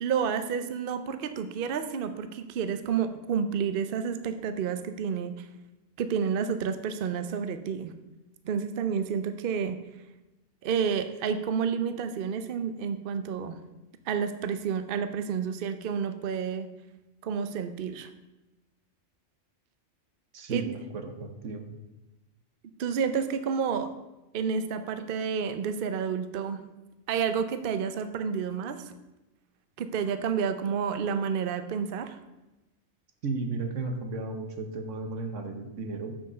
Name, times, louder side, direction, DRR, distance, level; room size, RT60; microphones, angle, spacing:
voice 1, 0.0-5.5 6.0-7.9 8.4-9.8 10.6-13.6 14.1-16.7 17.2-18.1 20.5-20.7 22.8-23.9 24.3-26.6 27.1-28.9 29.8-32.2, right 6 dB, 55° right, 10 dB, 0.7 m, -30 dB
voice 2, 20.3-21.7 33.2-36.2, right 3 dB, 75° right, 6 dB, 1.3 m, -34 dB
7.2 x 5.9 x 6.6 m, 1.0 s
omnidirectional pair, 1.3 m